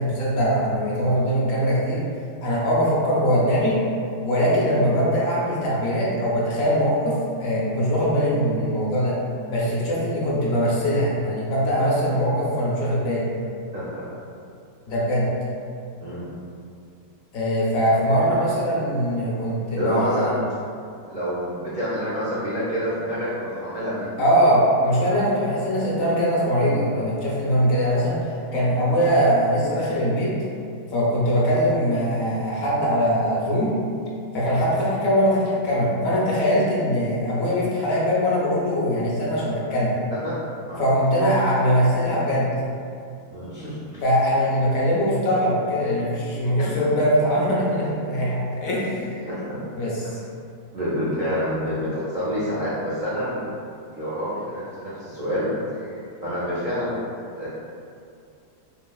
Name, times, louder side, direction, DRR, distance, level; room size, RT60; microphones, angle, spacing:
voice 1, 0.0-2.0 2.4-3.8 4.2-9.2 9.5-13.3 14.9-15.3 17.3-20.4 24.2-28.2 28.5-30.4 30.9-33.7 34.3-40.0 40.8-42.5 44.0-49.2 49.8-50.2, equal, 65° left, -6 dB, 1.0 m, -22 dB
voice 2, 13.7-14.0 16.0-16.2 19.8-20.4 21.1-24.1 40.1-40.3 40.7-40.8 43.3-43.8 46.6-46.9 49.2-49.6 50.7-53.5 53.9-56.9 57.4-57.5, equal, 70° right, -11 dB, 0.4 m, -27 dB
3.1 x 2.7 x 2.2 m, 2.4 s
omnidirectional pair, 1.7 m